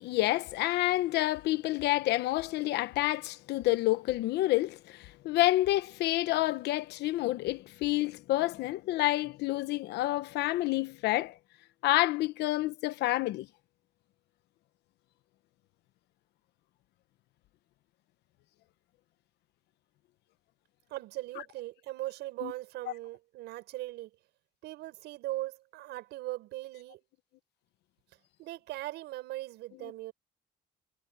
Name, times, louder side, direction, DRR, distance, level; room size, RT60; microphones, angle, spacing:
voice 1, 0.0-11.3 11.8-13.5 22.4-22.5, left 17 dB, 80° left, 1.1 m, -28 dB
voice 2, 20.9-24.1 24.6-27.0 28.4-30.1, right 17 dB, 85° right, 7.6 m, -39 dB
cardioid pair, 110°, 17 cm